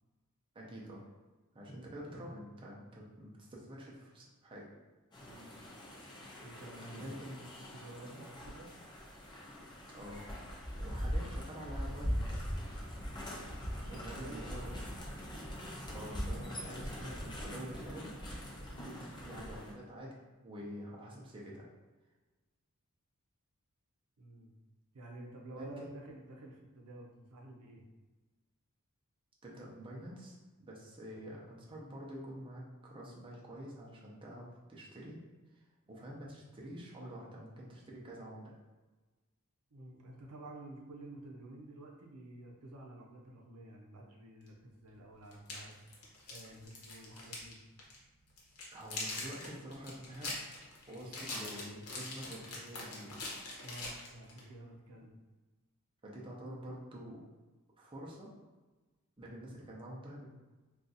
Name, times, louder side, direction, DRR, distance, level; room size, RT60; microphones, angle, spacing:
voice 1, 0.5-1.0 1.5-4.7 6.9-7.6 8.1-8.2 9.9-10.2 10.8-12.4 13.8-14.8 15.9-18.1 18.8-20.1 20.4-21.7 25.6-25.9 29.4-35.2 35.5-38.6 48.7-50.4 50.9-53.1 54.9-55.0 56.0-57.2 57.8-58.3 59.2-60.3, equal, 25° right, -4 dB, 0.6 m, -47 dB
sound 1, 5.1-19.7, equal, 20° left, 0.5 m, -41 dB
voice 2, 5.2-5.6 6.2-7.1 7.7-8.7 13.8-14.9 18.8-19.1 24.2-24.5 24.9-27.8 39.7-47.6 53.6-55.2, right 1 dB, 85° right, 0 dB, 0.6 m, -51 dB
sound 2, 44.5-44.6 45.3-47.5 47.8-48.0 48.4-54.4, left 2 dB, 80° left, 0.9 m, -43 dB
2.6 x 2.4 x 3.9 m, 1.2 s
head